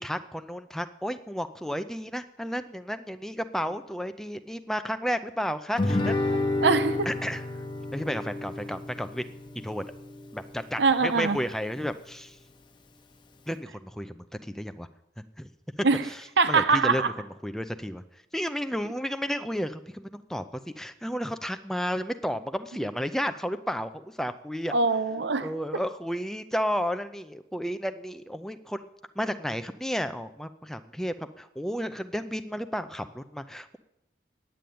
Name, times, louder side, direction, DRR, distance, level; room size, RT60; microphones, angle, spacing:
voice 1, 0.0-6.2 7.1-7.4 7.9-9.3 9.6-9.8 10.3-12.4 13.5-14.9 15.4-15.5 16.0-17.0 17.4-18.0 18.3-20.4 20.8-24.7 25.4-28.9 29.2-33.8, equal, ahead, 9 dB, 0.5 m, -32 dB
Guitar, 5.8-10.8, left 2 dB, 25° left, 0.8 m, -30 dB
voice 2, 6.6-7.1 10.8-11.4 15.8-16.1 16.4-17.1 24.7-25.5, right 4 dB, 70° right, 12 dB, 0.7 m, -23 dB
9.3 x 9.0 x 8.5 m, 0.87 s
head